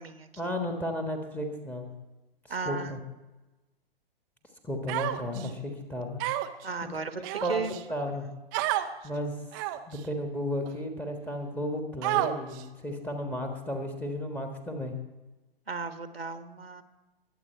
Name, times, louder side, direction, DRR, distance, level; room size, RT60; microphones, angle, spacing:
voice 1, 0.4-1.9 2.6-3.0 4.6-6.2 6.8-6.9 7.4-7.6 7.9-8.3 9.0-9.3 9.9-14.9, left 1 dB, 5° left, 3 dB, 1.5 m, -33 dB
voice 2, 2.5-2.9 6.6-7.7 15.7-16.8, right 4 dB, 75° right, 9 dB, 1.3 m, -35 dB
Human voice, 4.9-5.5 6.2-6.6 7.2-7.8 8.5-8.9 9.5-10.0 10.7-10.8 12.0-12.6, right 14 dB, 20° right, 0.6 m, -29 dB
22.0 x 8.2 x 4.5 m, 1.1 s
figure-of-eight pair, 120°, 30 cm